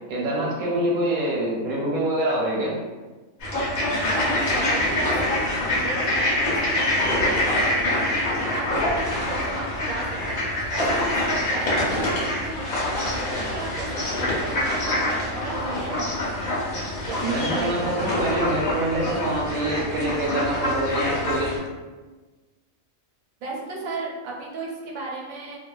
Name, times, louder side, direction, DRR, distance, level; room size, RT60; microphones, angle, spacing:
voice 1, 0.1-2.7 17.2-21.5, right 1 dB, 45° right, -5 dB, 0.6 m, -25 dB
sound 1, 3.4-21.6, left 1 dB, 80° left, 1.2 m, -25 dB
voice 2, 3.8-18.6 23.4-25.6, right 3 dB, 85° right, -2 dB, 1.0 m, -36 dB
2.7 x 2.1 x 2.3 m, 1.3 s
omnidirectional pair, 1.4 m